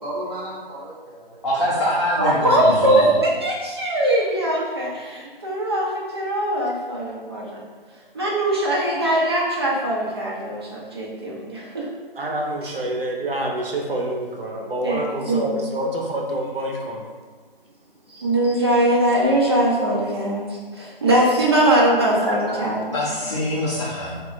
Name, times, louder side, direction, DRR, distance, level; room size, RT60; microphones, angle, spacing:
voice 1, 0.0-1.4 21.1-21.2 21.6-22.0 22.5-22.9 23.5-23.7, right 1 dB, 45° right, -8 dB, 1.4 m, -34 dB
voice 2, 1.4-3.1 22.9-24.2, left 1 dB, 30° left, -9 dB, 0.4 m, -24 dB
voice 3, 2.2-7.6 8.1-11.8 12.6-12.8 14.8-15.5 18.1-22.8, right 1 dB, 25° right, -4 dB, 0.5 m, -21 dB
voice 4, 12.2-17.0 19.8-19.9 22.3-22.4, right 1 dB, 70° right, 0 dB, 0.7 m, -27 dB
3.5 x 2.4 x 3.1 m, 1.4 s
figure-of-eight pair, 155°, 29 cm